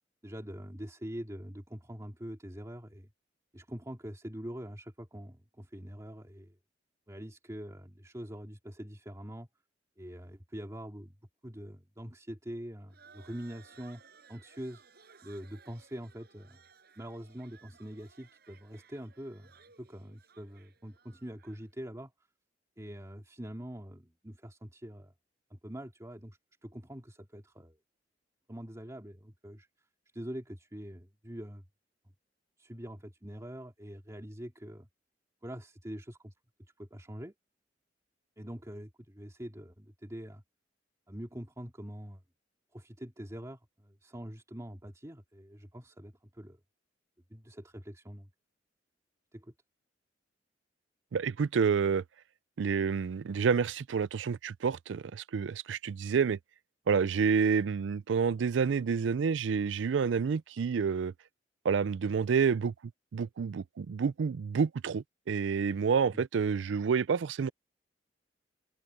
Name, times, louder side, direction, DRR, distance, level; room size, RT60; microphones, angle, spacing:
voice 1, 0.2-3.1 3.5-6.6 7.1-9.5 10.0-11.1 11.4-14.0 14.3-14.8 15.2-16.6 17.0-19.5 19.8-22.1 22.8-25.1 25.5-27.8 28.5-29.7 30.1-31.6 32.6-34.9 35.4-36.3 36.8-37.3 38.4-40.4 41.1-42.2 42.7-46.6 47.3-48.3 49.3-49.5 66.1-66.2, equal, 20° right, 2.4 m, -44 dB
sound 1, 12.9-21.7, right 5 dB, 60° right, 6.8 m, -60 dB
voice 2, 51.1-52.0 52.6-56.4 56.9-61.1 61.6-62.7 63.1-67.5, right 6 dB, 85° right, 0.4 m, -29 dB
head